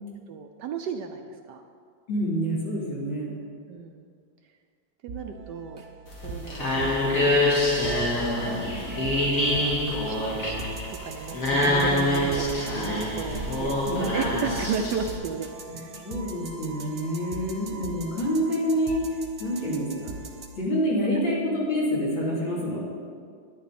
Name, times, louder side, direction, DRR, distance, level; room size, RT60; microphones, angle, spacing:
voice 1, 0.3-1.6 3.7-4.1 5.0-5.8 6.2-7.6 8.0-12.5 12.7-15.9, right 6 dB, 70° right, 5 dB, 1.1 m, -35 dB
voice 2, 2.1-3.4 11.5-12.1 13.9-14.1 16.0-19.0 19.4-20.1 20.6-22.8, equal, 75° left, -7 dB, 3.8 m, -27 dB
sound 1, 5.1-20.5, right 3 dB, 45° right, 0.8 m, -41 dB
sound 2, 6.1-15.2, left 1 dB, 45° left, 2.2 m, -25 dB
11.5 x 10.5 x 4.2 m, 2.1 s
omnidirectional pair, 2.2 m